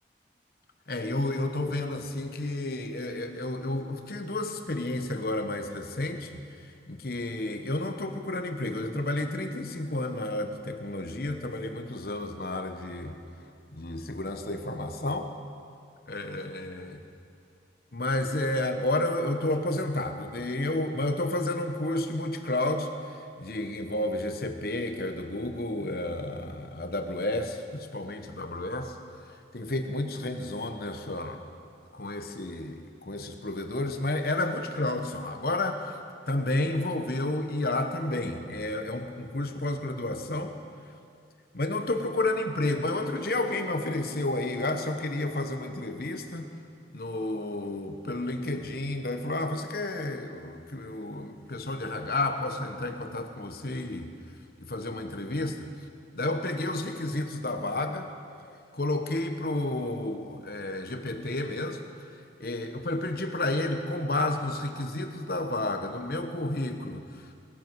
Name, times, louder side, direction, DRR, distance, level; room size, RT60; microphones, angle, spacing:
voice 1, 0.9-6.3 6.6-13.2 13.7-15.3 16.1-17.0 17.9-29.0 29.5-31.4 31.9-36.0 36.3-40.6 41.5-46.5 46.9-54.1 54.6-55.6 56.1-58.1 58.7-61.8 62.4-67.3, left 2 dB, 55° left, 6 dB, 1.1 m, -31 dB
20.0 x 12.0 x 4.7 m, 2.4 s
head